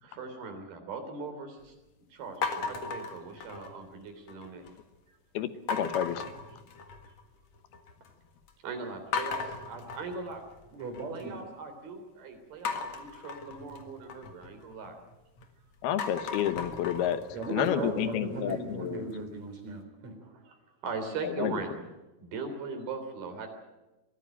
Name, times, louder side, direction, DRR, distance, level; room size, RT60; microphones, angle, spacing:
voice 1, 0.0-1.7 2.1-4.6 8.6-10.4 11.1-15.0 17.6-18.0 20.2-20.6 20.8-21.9 22.2-23.5, right 4 dB, 80° right, 6 dB, 5.3 m, -39 dB
sound 1, 2.4-3.9 4.3-4.8 5.7-7.2 7.5-8.1 8.5-8.6 9.1-11.2 12.6-15.4 15.8-18.7, left 5 dB, 50° left, 2.7 m, -37 dB
voice 2, 5.3-6.2 15.8-17.2 17.5-19.1 21.2-21.5, left 10 dB, 90° left, 12 dB, 3.1 m, -30 dB
voice 3, 10.7-11.4 17.3-20.2, right 3 dB, 50° right, 5 dB, 5.1 m, -37 dB
23.0 x 15.5 x 8.9 m, 1.1 s
omnidirectional pair, 4.3 m